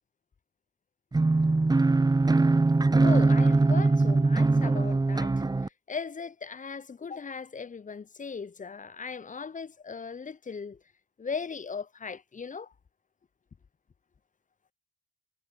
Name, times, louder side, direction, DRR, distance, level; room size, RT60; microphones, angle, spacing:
sound 1, 1.1-5.7, right 3 dB, 15° right, 0.9 m, -22 dB
voice 1, 2.9-5.3 5.9-10.8 11.2-12.7, left 5 dB, 25° left, 0.9 m, -38 dB
figure-of-eight pair, 45°, 31 cm